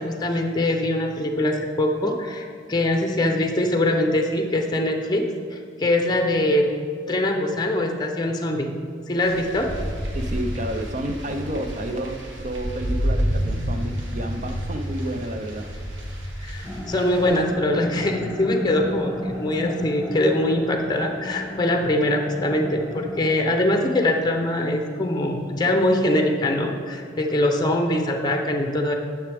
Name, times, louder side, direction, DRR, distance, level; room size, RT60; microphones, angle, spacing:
voice 1, 0.0-6.7 7.1-8.7 9.1-9.7 16.4-28.9, left 1 dB, 20° left, 3 dB, 0.6 m, -23 dB
sound 1, 9.2-17.4, equal, 85° right, 1.4 m, -29 dB
voice 2, 10.1-15.7, right 1 dB, 40° right, 7 dB, 0.6 m, -30 dB
sound 2, 16.6-23.4, equal, 5° right, 1.4 m, -33 dB
10.0 x 6.8 x 3.5 m, 2.1 s
head